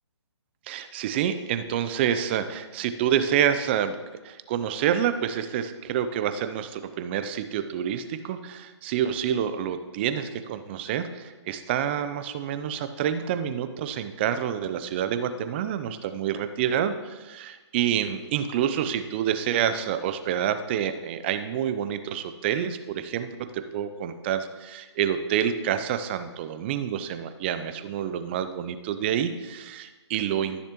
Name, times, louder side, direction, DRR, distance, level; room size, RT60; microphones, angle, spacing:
voice 1, 0.7-4.0 4.2-23.3 23.5-30.6, right 9 dB, 25° right, 10 dB, 0.4 m, -28 dB
13.0 x 6.6 x 2.9 m, 1.2 s
hypercardioid pair, 150°, 15 cm